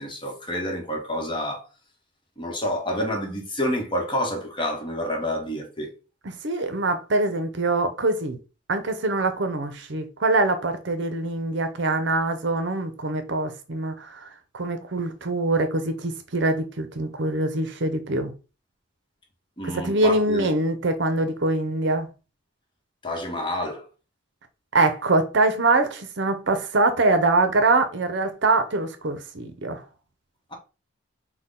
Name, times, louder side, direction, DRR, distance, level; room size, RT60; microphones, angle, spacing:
voice 1, 0.0-1.7 2.4-6.0 19.6-20.5 23.0-23.9 30.5-30.6, left 1 dB, 25° left, 1.0 m, -28 dB
voice 2, 6.2-8.4 8.7-14.2 14.5-18.3 19.6-22.1 24.7-29.8, right 2 dB, 60° right, 0.7 m, -24 dB
6.1 x 2.2 x 3.7 m
head